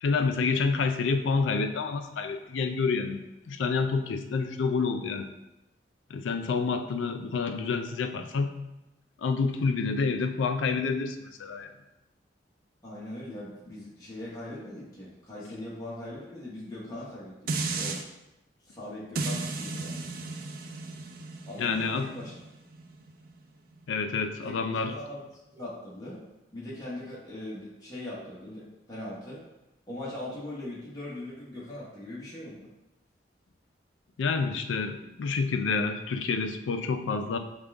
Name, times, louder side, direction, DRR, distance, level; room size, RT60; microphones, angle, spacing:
voice 1, 0.0-5.3 6.1-8.5 9.2-11.7 21.6-22.1 23.9-25.0 34.2-37.4, left 4 dB, 85° left, 7 dB, 0.4 m, -28 dB
voice 2, 12.8-18.0 18.6-20.1 21.5-22.4 24.4-26.2 26.5-29.4 29.9-32.7, left 1 dB, 20° left, -8 dB, 0.9 m, -40 dB
sound 1, 17.5-18.0 19.2-24.3 24.8-24.9, right 3 dB, 50° right, 0.4 m, -35 dB
5.1 x 2.4 x 3.4 m, 0.95 s
head